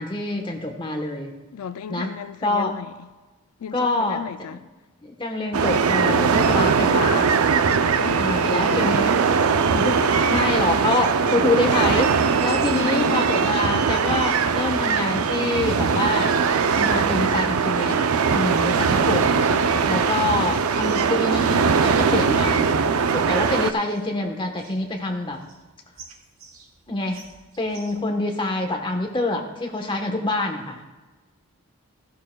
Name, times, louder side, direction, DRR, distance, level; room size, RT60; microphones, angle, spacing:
voice 1, 0.0-1.3 1.9-2.1 2.4-2.7 3.7-4.2 4.5-4.6 5.0-7.3 8.2-9.2 9.7-16.3 16.7-22.7 23.1-25.4 26.9-27.2 27.6-30.8, left 2 dB, 20° left, 1.1 m, -26 dB
voice 2, 1.5-3.1 3.6-4.6 8.0-8.9 12.7-13.3, left 7 dB, 90° left, 0.4 m, -33 dB
sound 1, 5.5-23.7, right 5 dB, 80° right, 0.5 m, -20 dB
Bass guitar, 11.3-17.6, right 2 dB, 15° right, 0.9 m, -46 dB
sound 2, 12.4-28.0, right 4 dB, 65° right, 1.4 m, -45 dB
14.5 x 11.0 x 2.3 m
head